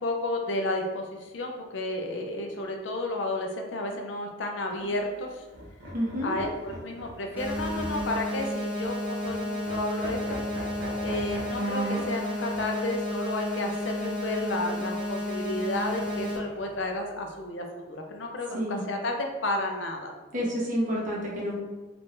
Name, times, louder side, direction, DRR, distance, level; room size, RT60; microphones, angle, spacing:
voice 1, 0.0-5.4 6.2-10.4 11.0-20.1, left 1 dB, 70° left, 2 dB, 0.6 m, -32 dB
sound 1, 4.7-5.0 5.5-8.4 8.8-8.9 9.2-9.4 9.6-12.1 12.5-12.7 15.8-16.8, right 1 dB, 90° right, 1.0 m, -38 dB
voice 2, 5.9-6.3 18.5-18.9 20.3-21.6, equal, 45° right, -4 dB, 1.1 m, -29 dB
sound 2, 7.4-16.4, left 1 dB, 10° right, 0.8 m, -32 dB
3.6 x 3.3 x 2.6 m, 1.2 s
head